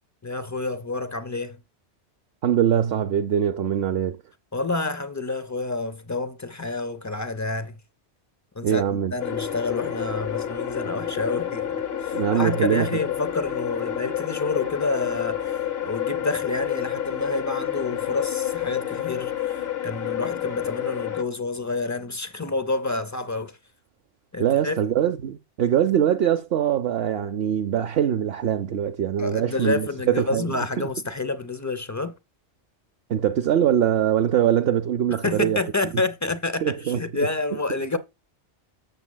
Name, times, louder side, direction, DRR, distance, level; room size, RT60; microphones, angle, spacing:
voice 1, 0.2-1.6 4.5-7.8 8.5-23.6 24.3-24.8 29.2-32.2 35.2-38.0, left 3 dB, 25° left, 0.4 m, -29 dB
voice 2, 2.4-4.2 8.6-9.1 12.1-12.9 24.4-30.5 30.8-30.9 33.1-35.6 36.6-37.0, right 10 dB, 65° right, 0.8 m, -22 dB
sound 1, 9.2-21.2, left 10 dB, 65° left, 1.1 m, -29 dB
13.5 x 7.1 x 2.2 m
omnidirectional pair, 1.2 m